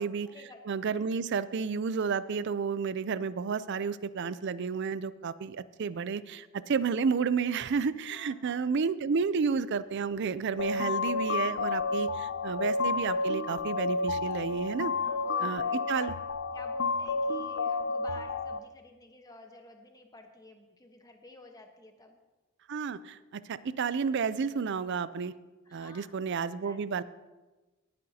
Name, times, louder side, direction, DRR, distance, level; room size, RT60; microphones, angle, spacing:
voice 1, 0.0-1.0 8.1-8.7 11.9-12.4 14.9-16.1 16.5-22.2 25.6-26.1 26.5-26.8, left 2 dB, 20° left, 4 dB, 1.1 m, -51 dB
voice 2, 0.7-14.9 15.4-15.6 15.9-16.1 22.7-25.3 25.7-27.0, right 5 dB, 55° right, 16 dB, 0.4 m, -31 dB
sound 1, 10.6-18.6, left 3 dB, 60° left, 0.4 m, -31 dB
19.0 x 9.4 x 2.8 m, 1.2 s
head